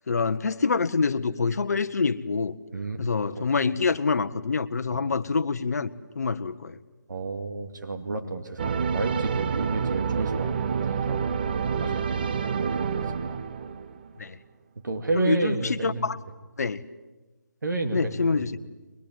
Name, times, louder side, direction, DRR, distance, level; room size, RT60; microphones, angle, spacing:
voice 1, 0.1-2.6 3.0-5.9 6.1-6.8 14.2-14.4 15.2-16.2 16.6-16.8 17.9-18.5, left 4 dB, 55° left, 12 dB, 1.1 m, -26 dB
voice 2, 2.7-3.0 3.6-3.8 4.9-5.2 7.1-11.2 11.8-12.2 12.5-13.0 13.3-13.4 14.8-16.1 17.6-18.5, right 3 dB, 65° right, 5 dB, 2.4 m, -31 dB
sound 1, 8.6-14.1, right 6 dB, 30° right, 0.8 m, -28 dB
23.0 x 21.5 x 9.3 m, 1.2 s
figure-of-eight pair, 165°, 11 cm